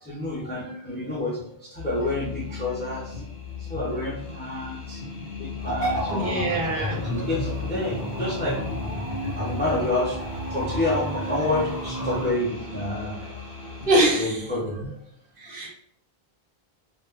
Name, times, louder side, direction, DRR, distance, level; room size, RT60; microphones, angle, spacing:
voice 1, 0.0-3.2 3.7-5.0 5.4-6.3 7.1-8.6 9.3-10.2 10.5-13.1 14.1-15.0 15.4-15.7, left 2 dB, 20° left, -5 dB, 0.3 m, -29 dB
sound 1, 1.8-14.1, left 5 dB, 55° left, 0.7 m, -37 dB
sound 2, 5.6-12.3, right 1 dB, 20° right, 0.9 m, -31 dB
voice 2, 6.1-7.1 13.8-14.4 15.4-15.7, right 1 dB, 60° right, -2 dB, 0.9 m, -23 dB
2.1 x 2.0 x 3.3 m, 0.68 s
omnidirectional pair, 1.0 m